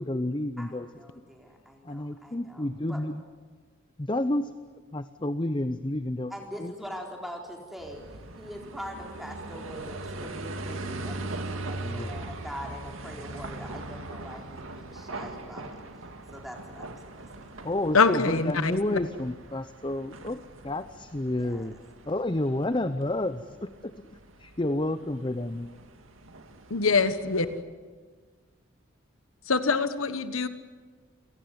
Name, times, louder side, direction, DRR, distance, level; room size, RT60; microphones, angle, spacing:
voice 1, 0.0-0.9 1.8-3.2 4.0-4.6 4.9-6.3 6.6-6.7 11.8-12.2 17.6-21.8 22.1-25.7, left 1 dB, 25° left, 11 dB, 0.7 m, -30 dB
voice 2, 0.6-3.0 6.3-8.0 8.3-17.2 21.4-21.7, equal, ahead, 1 dB, 3.9 m, -43 dB
sound 1, 7.8-27.6, right 2 dB, 80° right, 2.3 m, -41 dB
voice 3, 17.9-19.0 26.7-27.4 29.5-30.5, left 4 dB, 85° left, 12 dB, 1.4 m, -24 dB
29.0 x 17.5 x 9.6 m, 1.5 s
head